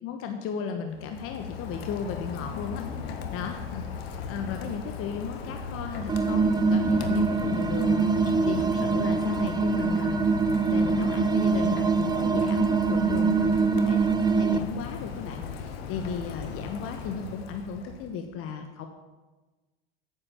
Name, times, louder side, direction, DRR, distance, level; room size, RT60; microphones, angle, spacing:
voice 1, 0.0-8.0 8.5-10.2 10.7-18.9, left 6 dB, 45° left, 5 dB, 1.3 m, -35 dB
Rain, 0.9-18.2, left 6 dB, 75° left, 1.6 m, -37 dB
sound 1, 6.1-14.6, right 4 dB, 15° right, 0.6 m, -24 dB
9.5 x 8.9 x 6.9 m, 1.2 s
hypercardioid pair, 95°, 30 cm